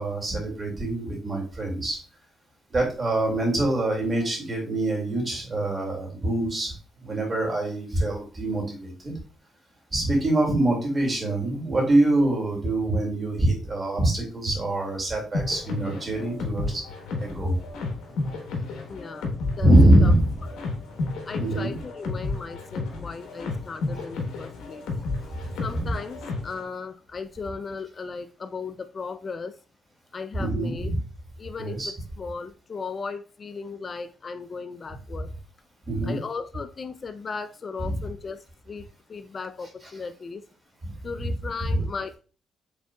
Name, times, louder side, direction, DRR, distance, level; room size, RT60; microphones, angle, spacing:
voice 1, 0.0-2.0 2.7-6.7 7.0-9.1 9.9-16.8 17.2-17.6 19.6-20.3 21.4-21.7 25.4-25.5 30.4-31.0 31.6-31.9 35.9-36.2 37.8-38.0 40.8-40.9 41.7-41.8, right 1 dB, 30° right, -1 dB, 2.1 m, -24 dB
sound 1, 15.3-26.6, left 3 dB, 85° left, 1.0 m, -32 dB
voice 2, 18.9-19.7 20.0-20.1 21.3-24.9 25.6-29.5 30.1-30.9 31.4-35.3 36.0-40.4 41.0-42.2, left 4 dB, 40° left, 9 dB, 0.3 m, -36 dB
5.4 x 3.5 x 2.2 m, 0.36 s
cardioid pair, 90°, 0 cm